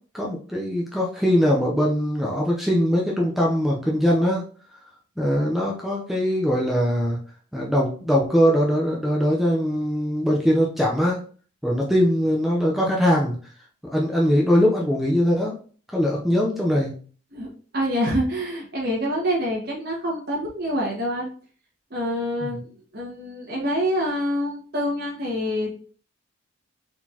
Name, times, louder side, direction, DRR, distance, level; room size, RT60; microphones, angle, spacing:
voice 1, 0.1-4.4 5.2-7.2 7.5-11.2 11.6-13.4 13.9-15.6 15.9-16.9 22.4-22.6, equal, ahead, -3 dB, 0.6 m, -21 dB
voice 2, 17.3-21.3 21.9-22.7 22.9-25.8, equal, 50° right, -4 dB, 1.5 m, -26 dB
4.3 x 4.1 x 2.8 m, 0.42 s
head